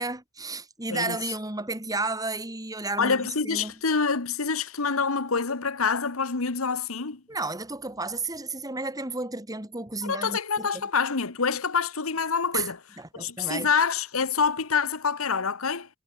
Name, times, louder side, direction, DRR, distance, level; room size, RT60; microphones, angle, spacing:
voice 1, 0.0-3.7 7.3-10.8 12.5-12.7 13.0-13.7, right 3 dB, 15° right, 3.4 m, -32 dB
voice 2, 3.0-7.2 10.0-12.8 13.1-15.9, left 5 dB, 80° left, 1.4 m, -26 dB
head